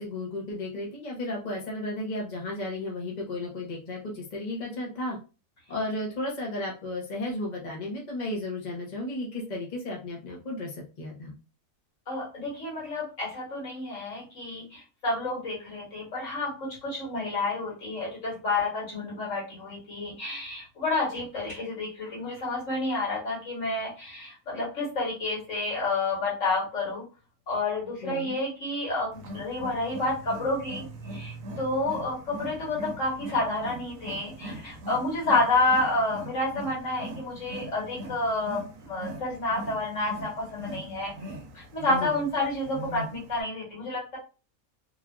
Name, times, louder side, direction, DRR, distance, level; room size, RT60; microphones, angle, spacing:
voice 1, 0.0-5.2 5.7-10.7 11.0-11.3 28.0-28.4 42.0-42.2, left 2 dB, 40° left, -2 dB, 0.7 m, -34 dB
voice 2, 12.1-27.0 27.5-41.1 41.5-44.2, left 2 dB, 60° left, -4 dB, 1.9 m, -29 dB
Wild animals, 29.1-43.4, right 1 dB, 70° right, 1.0 m, -41 dB
3.2 x 2.4 x 2.4 m, 0.32 s
omnidirectional pair, 1.6 m